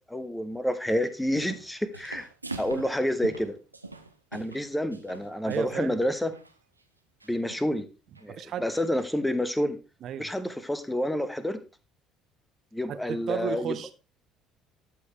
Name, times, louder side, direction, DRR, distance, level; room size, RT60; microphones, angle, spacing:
voice 1, 0.1-2.3 2.6-3.5 4.3-6.3 7.3-7.9 8.2-9.8 10.2-11.6 12.7-13.8, left 1 dB, 5° left, 1.1 m, -29 dB
sound 1, 1.1-1.7 1.9-5.9 6.3-6.5 7.2-7.7 8.1-8.3 8.7-9.1, right 3 dB, 90° right, 0.5 m, -43 dB
voice 2, 5.4-6.0 8.3-8.7 10.0-10.3 12.9-13.9, right 10 dB, 50° right, 0.8 m, -34 dB
13.0 x 4.8 x 3.2 m
figure-of-eight pair, 55°, 0 cm